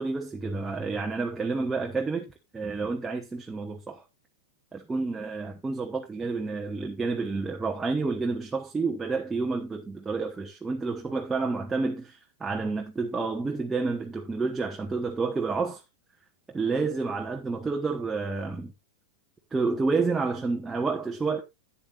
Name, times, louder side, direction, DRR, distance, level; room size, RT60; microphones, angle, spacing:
voice 1, 0.0-2.3 2.5-4.0 4.7-15.8 16.5-18.7 19.5-21.4, right 4 dB, 15° right, 1.1 m, -29 dB
12.0 x 8.4 x 2.5 m
figure-of-eight pair, 95°, 0 cm